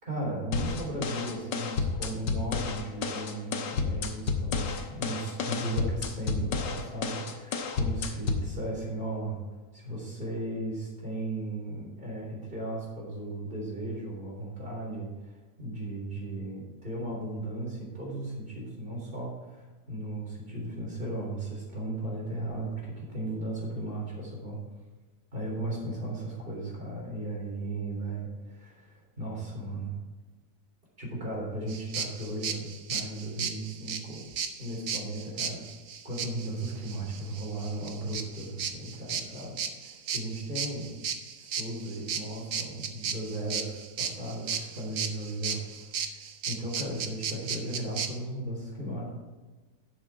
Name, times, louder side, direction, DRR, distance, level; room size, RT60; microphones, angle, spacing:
voice 1, 0.0-9.4 9.7-24.6 25.3-30.0 31.0-34.2 34.6-35.6 36.0-40.9 41.4-46.2 46.5-49.1, right 1 dB, 30° right, -3 dB, 3.7 m, -36 dB
sound 1, 0.5-8.5, left 5 dB, 80° left, 1.7 m, -31 dB
sound 2, 31.7-48.1, right 7 dB, 55° right, 1.1 m, -35 dB
11.0 x 7.3 x 4.6 m, 1.3 s
omnidirectional pair, 1.9 m